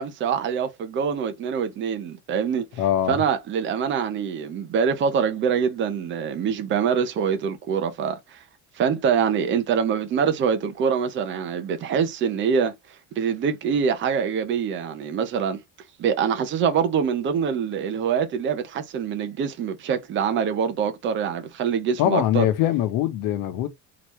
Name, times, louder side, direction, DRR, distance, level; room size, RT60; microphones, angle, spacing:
voice 1, 0.0-2.6 3.1-8.4 8.8-12.7 13.2-15.6 16.0-22.5, right 7 dB, 35° right, 0.7 m, -24 dB
voice 2, 2.8-3.2 22.0-23.7, left 12 dB, 85° left, 1.0 m, -22 dB
4.0 x 3.0 x 3.1 m
cardioid pair, 160°, 33 cm